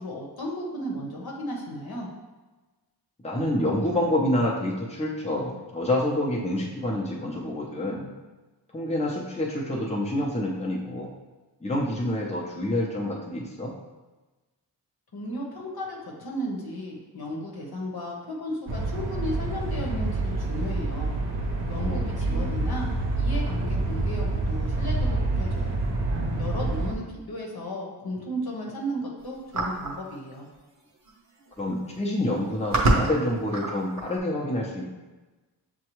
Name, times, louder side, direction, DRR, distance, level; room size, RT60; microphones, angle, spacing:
voice 1, 0.0-2.1 15.1-21.1 21.7-25.8 26.4-30.5, equal, 60° left, -2 dB, 1.0 m, -34 dB
voice 2, 3.2-8.1 8.7-11.1 11.6-13.7 21.7-22.0 22.3-22.5 31.6-34.8, left 1 dB, 15° left, -3 dB, 0.7 m, -27 dB
sound 1, 18.7-26.9, right 2 dB, 90° right, 0.7 m, -27 dB
sound 2, 29.5-30.0 31.1-31.2 31.4-31.8 32.4-34.2, right 2 dB, 40° right, 0.8 m, -25 dB
6.7 x 2.3 x 3.0 m, 1.2 s
wide cardioid pair, 50°, 42 cm